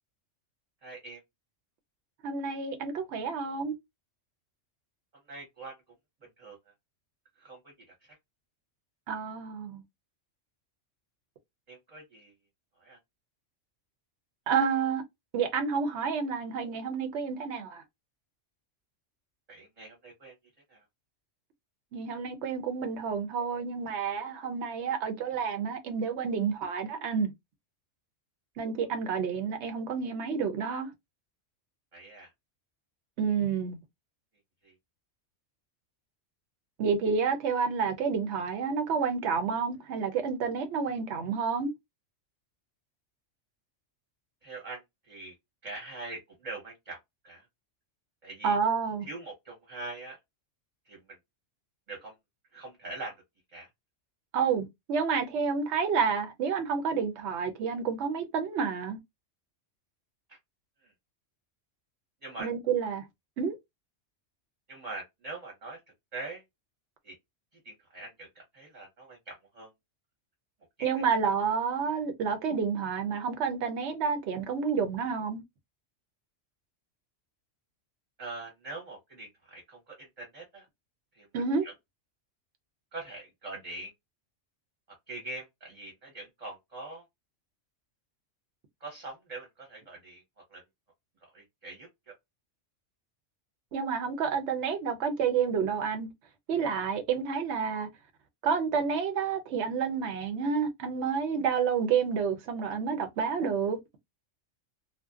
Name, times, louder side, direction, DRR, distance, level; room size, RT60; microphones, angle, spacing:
voice 1, 0.8-1.2 5.3-5.7 6.4-6.6 7.4-7.6 8.0-8.1 11.7-12.3 12.8-13.0 19.5-20.3 20.7-20.8 31.9-32.3 34.6-34.7 44.4-45.3 45.6-47.0 47.2-47.5 48.2-48.6 49.0-50.2 50.9-51.0 51.9-52.1 52.5-53.1 53.5-53.7 60.3-60.4 60.8-60.9 62.2-62.5 64.7-65.8 66.1-66.4 67.0-67.1 67.6-69.7 70.8-71.0 78.2-80.7 81.1-81.3 81.6-81.7 82.9-83.9 85.1-87.0 88.8-90.2 90.5-90.6 91.3-92.1, right 2 dB, 35° right, 0.9 m, -43 dB
voice 2, 2.2-3.7 9.1-9.8 14.5-15.0 15.3-17.8 21.9-27.3 28.6-30.9 33.2-33.8 36.8-41.7 48.4-49.1 54.3-59.0 62.4-63.0 63.4-63.5 70.8-75.4 81.3-81.7 93.7-96.1 96.5-97.9 98.4-103.8, right 6 dB, 70° right, 0.9 m, -29 dB
2.5 x 2.2 x 2.3 m
omnidirectional pair, 1.3 m